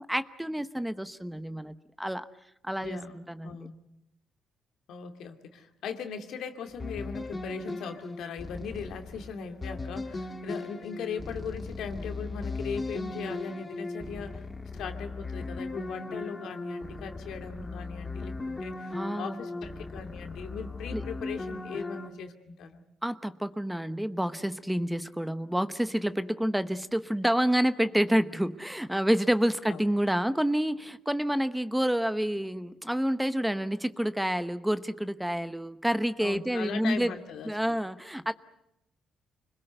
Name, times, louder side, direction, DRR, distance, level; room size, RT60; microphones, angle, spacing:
voice 1, 0.0-2.2 2.6-3.7 18.9-19.4 20.9-21.0 23.0-37.1 37.5-38.3, equal, 5° right, 12 dB, 0.9 m, -28 dB
voice 2, 2.8-3.2 3.4-3.7 4.9-14.4 14.7-22.8 29.7-29.9 36.2-37.8, left 6 dB, 75° left, 6 dB, 2.4 m, -39 dB
sound 1, 6.7-22.1, left 3 dB, 25° left, 2.3 m, -38 dB
26.0 x 21.0 x 8.0 m, 0.83 s
cardioid pair, 90°, 0 cm